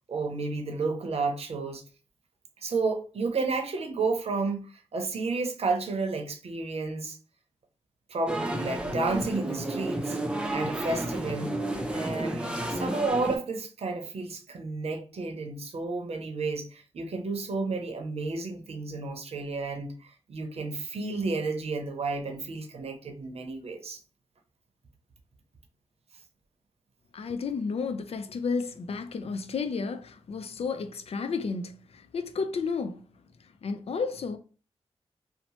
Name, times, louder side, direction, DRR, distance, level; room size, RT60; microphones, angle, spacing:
voice 1, 0.1-1.8 2.6-7.2 8.1-10.2 10.5-11.5 11.9-24.0, right 3 dB, 65° right, 0.7 m, -31 dB
sound 1, 8.3-13.4, right 1 dB, 10° right, 0.6 m, -32 dB
voice 2, 27.1-33.1 33.6-34.4, left 5 dB, 60° left, 0.4 m, -32 dB
2.7 x 2.1 x 3.0 m
cardioid pair, 60°, 11 cm